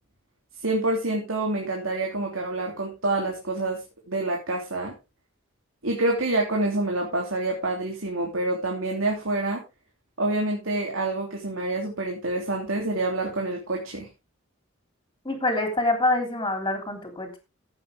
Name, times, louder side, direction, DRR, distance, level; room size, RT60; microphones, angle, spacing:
voice 1, 0.6-3.8 4.1-4.9 5.8-9.6 10.2-14.1, right 2 dB, 75° right, 0 dB, 3.1 m, -27 dB
voice 2, 15.2-17.4, left 2 dB, 20° left, 4 dB, 3.4 m, -25 dB
15.5 x 8.3 x 3.6 m, 0.28 s
head